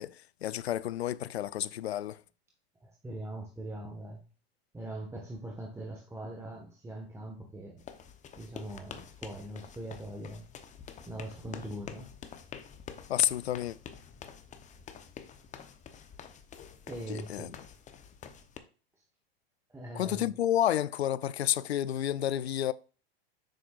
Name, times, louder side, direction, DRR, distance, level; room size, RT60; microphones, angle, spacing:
voice 1, 0.0-2.2 13.1-13.8 17.1-17.5 19.9-22.7, left 11 dB, 90° left, 0.5 m, -30 dB
voice 2, 2.8-4.2 4.7-7.9 8.4-10.5 11.0-12.1 16.9-17.6 19.7-20.3, right 1 dB, 10° right, 1.4 m, -41 dB
sound 1, 7.8-18.6, left 7 dB, 25° left, 0.9 m, -48 dB
7.6 x 6.0 x 2.4 m
hypercardioid pair, 105°, 31 cm